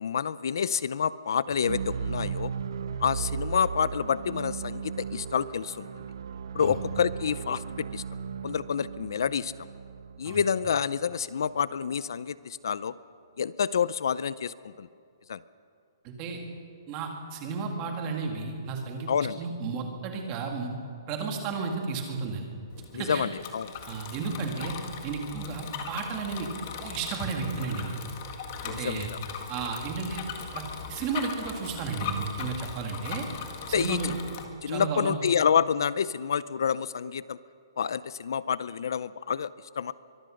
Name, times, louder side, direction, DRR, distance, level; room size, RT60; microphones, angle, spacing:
voice 1, 0.0-2.5 3.0-6.0 6.5-8.0 8.4-9.5 10.2-12.9 13.4-14.9 15.3-15.4 19.1-19.4 22.9-23.7 28.7-29.2 33.7-34.1 34.6-37.4 37.8-39.5 39.8-39.9, left 7 dB, 60° left, 18 dB, 0.5 m, -28 dB
sound 1, 1.5-11.5, right 6 dB, 60° right, 0.8 m, -36 dB
voice 2, 16.0-16.4 16.9-19.1 19.4-20.7 21.1-22.5 22.9-23.3 23.9-24.7 25.0-26.5 26.8-28.0 28.6-29.1 29.5-30.2 30.5-30.6 30.9-33.3 33.7-34.1 34.7-35.2, right 5 dB, 20° right, 3 dB, 2.2 m, -33 dB
Bicycle, 22.7-34.4, left 7 dB, 30° left, 1.8 m, -39 dB
23.5 x 21.5 x 6.5 m, 2.4 s
hypercardioid pair, 180°, 2 cm